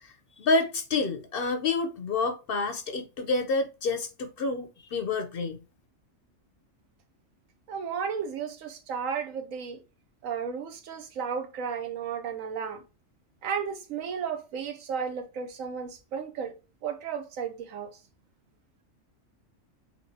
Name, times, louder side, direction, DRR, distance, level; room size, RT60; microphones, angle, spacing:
voice 1, 0.0-5.6, left 3 dB, 60° left, 0.7 m, -28 dB
voice 2, 7.7-9.8 10.2-12.8 13.4-16.5 16.8-17.9, right 6 dB, 85° right, 1.2 m, -33 dB
4.2 x 2.9 x 2.6 m
omnidirectional pair, 1.3 m